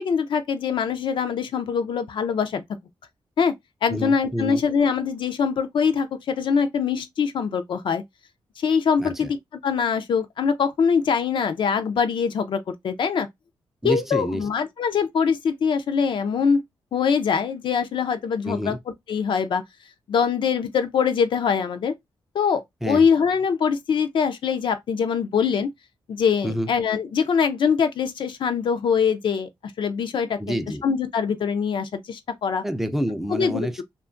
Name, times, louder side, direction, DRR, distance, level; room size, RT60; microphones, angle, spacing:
voice 1, 0.0-2.6 3.4-3.5 3.8-8.0 8.6-9.4 9.6-13.3 13.8-16.6 16.9-18.8 19.1-19.6 20.1-21.9 22.3-25.7 26.1-29.5 29.8-30.4 30.8-32.6 33.3-33.8, left 6 dB, 65° left, 0.5 m, -23 dB
voice 2, 3.9-4.6 9.0-9.3 13.8-14.5 18.4-18.8 22.8-23.1 26.4-26.7 30.4-30.8 32.6-33.8, equal, 5° right, 0.4 m, -28 dB
2.7 x 2.3 x 2.5 m
cardioid pair, 80°, 9 cm